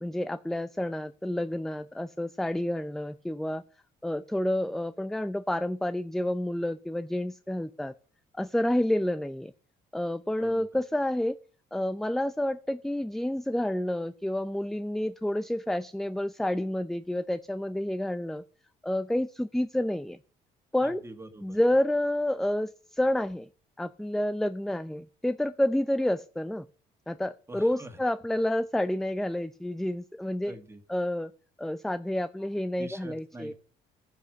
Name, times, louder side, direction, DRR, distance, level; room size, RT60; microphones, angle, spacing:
voice 1, 0.0-3.6 4.0-7.9 8.3-9.5 9.9-11.4 11.7-18.4 18.8-20.2 20.7-21.0 21.4-23.5 23.8-26.7 27.1-30.6 30.9-31.3 31.6-33.5, left 1 dB, ahead, 13 dB, 0.5 m, -29 dB
voice 2, 20.8-21.6 27.5-28.0 30.5-30.8 32.8-33.5, right 1 dB, 15° right, 8 dB, 2.0 m, -45 dB
15.0 x 5.7 x 6.3 m, 0.39 s
cardioid pair, 110°, 17 cm